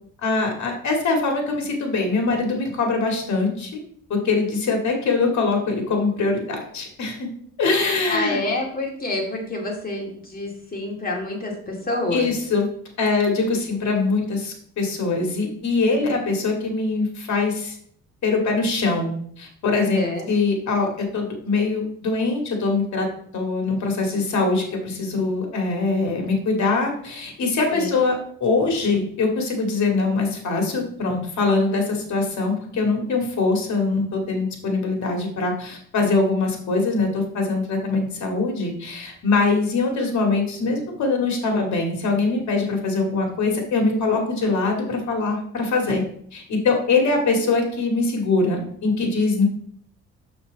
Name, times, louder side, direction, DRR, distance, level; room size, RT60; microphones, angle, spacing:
voice 1, 0.2-3.8 4.1-7.3 7.6-8.4 12.1-12.7 13.0-17.8 18.2-23.1 23.3-28.2 28.4-46.0 46.3-49.4, left 3 dB, 65° left, 2 dB, 2.2 m, -23 dB
voice 2, 8.1-12.3 19.7-20.3 27.7-28.0, left 2 dB, 30° left, 0 dB, 2.3 m, -28 dB
6.2 x 6.1 x 4.0 m, 0.63 s
cardioid pair, 90°, 30 cm